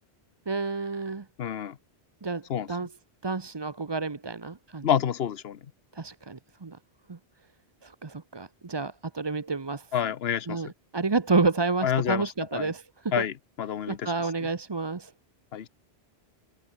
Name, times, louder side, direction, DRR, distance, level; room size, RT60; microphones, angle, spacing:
voice 1, 0.5-1.2 2.2-2.4 2.7-2.9 3.2-4.9 6.0-6.8 7.1-7.2 7.8-9.9 10.5-12.8 13.2-13.3 13.9-15.1, right 4 dB, 25° right, 0.8 m, -29 dB
voice 2, 1.4-1.8 2.5-2.7 4.8-5.6 9.9-10.6 11.8-12.7 13.1-14.1 14.4-14.5 15.5-15.7, left 9 dB, 70° left, 1.1 m, -28 dB
omnidirectional pair, 1.1 m